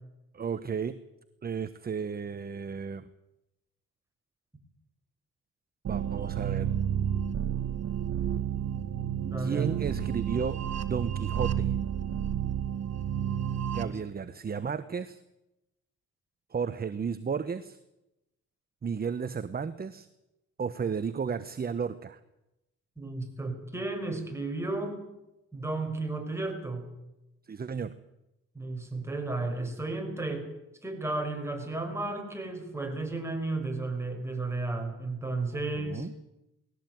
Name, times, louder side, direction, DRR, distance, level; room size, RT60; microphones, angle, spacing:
voice 1, 0.3-1.0 1.4-3.1 5.9-6.7 9.4-11.7 13.7-15.2 16.5-17.8 18.8-20.1 20.6-22.2 27.5-27.9 35.5-36.1, right 6 dB, 30° right, 12 dB, 1.1 m, -33 dB
sound 1, 5.8-13.9, right 9 dB, 55° right, 2.1 m, -31 dB
voice 2, 9.2-9.7 13.8-14.0 23.0-25.0 25.5-26.9 28.5-30.5 30.8-36.1, right 2 dB, 10° right, 3 dB, 6.3 m, -33 dB
20.0 x 17.0 x 9.4 m, 0.92 s
cardioid pair, 90°, 30 cm